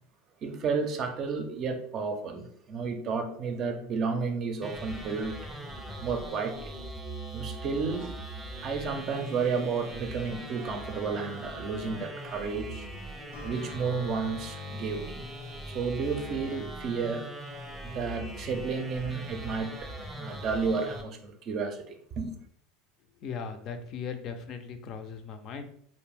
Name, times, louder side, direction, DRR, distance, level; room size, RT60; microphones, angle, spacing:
voice 1, 0.4-5.4 6.0-6.8 7.3-8.2 8.6-12.9 13.4-15.2 15.7-17.3 17.8-22.4, right 5 dB, 45° right, 0.5 m, -32 dB
sound 1, 4.6-21.0, right 1 dB, 10° right, 0.7 m, -41 dB
Acoustic guitar, 13.3-17.8, left 2 dB, 85° left, 0.7 m, -50 dB
voice 2, 23.2-25.7, left 6 dB, 50° left, 0.4 m, -38 dB
2.5 x 2.1 x 3.3 m
hypercardioid pair, 95°, 0 cm